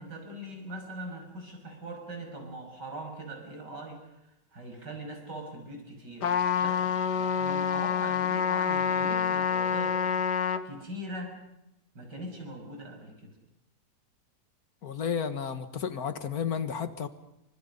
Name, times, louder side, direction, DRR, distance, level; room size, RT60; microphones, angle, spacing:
voice 1, 0.0-4.0 4.5-11.4 12.0-13.3, right 1 dB, 75° right, 3 dB, 6.9 m, -41 dB
Trumpet, 6.2-10.6, left 7 dB, 75° left, 1.9 m, -27 dB
voice 2, 14.8-17.1, left 7 dB, 60° left, 10 dB, 2.0 m, -32 dB
29.5 x 25.0 x 5.4 m, 0.87 s
omnidirectional pair, 1.8 m